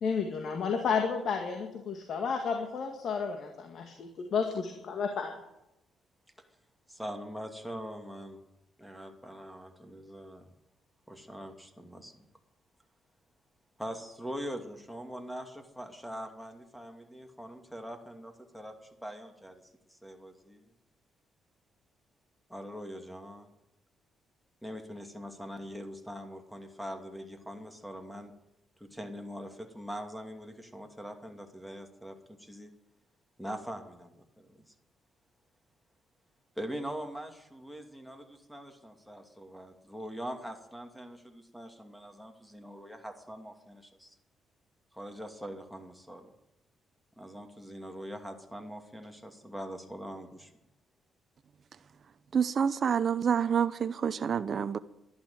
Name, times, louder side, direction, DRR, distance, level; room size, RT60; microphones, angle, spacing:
voice 1, 0.0-5.3, left 5 dB, 60° left, 1.9 m, -32 dB
voice 2, 6.9-8.4 8.8-10.5 11.1-12.3 13.8-19.6 19.9-20.7 22.5-23.5 24.6-28.3 28.8-32.7 33.4-34.7 36.6-44.2 44.9-46.3 47.2-50.5, equal, ahead, 2.5 m, -43 dB
voice 3, 52.3-54.8, right 7 dB, 50° right, 0.7 m, -28 dB
12.0 x 11.5 x 9.1 m
cardioid pair, 90°, 0 cm